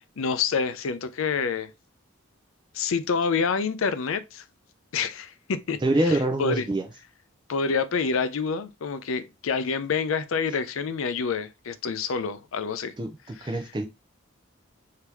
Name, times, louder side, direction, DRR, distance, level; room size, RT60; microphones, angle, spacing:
voice 1, 0.2-1.7 2.7-4.4 4.9-6.7 7.5-12.9 13.4-13.6, left 5 dB, 80° left, 0.5 m, -27 dB
voice 2, 5.8-6.8 13.0-13.1 13.4-13.9, right 1 dB, 20° right, 0.4 m, -24 dB
3.4 x 2.8 x 4.6 m
head